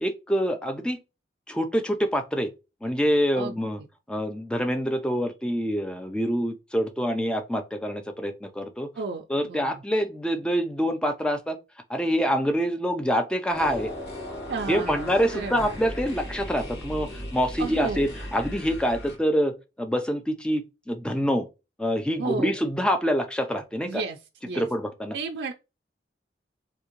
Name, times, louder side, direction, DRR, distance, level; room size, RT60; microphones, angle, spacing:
voice 1, 0.0-1.0 1.5-2.5 2.8-3.8 4.1-8.9 9.3-11.6 11.9-13.9 14.7-21.5 21.8-24.0 24.6-25.2, equal, 5° left, 0.4 m, -26 dB
voice 2, 9.0-9.8 14.5-15.7 17.6-18.1 22.2-22.5 23.8-24.2 24.4-24.7 25.1-25.5, right 4 dB, 75° right, 0.4 m, -33 dB
sound 1, 13.5-19.2, left 1 dB, 65° left, 1.6 m, -37 dB
3.5 x 2.8 x 2.9 m
head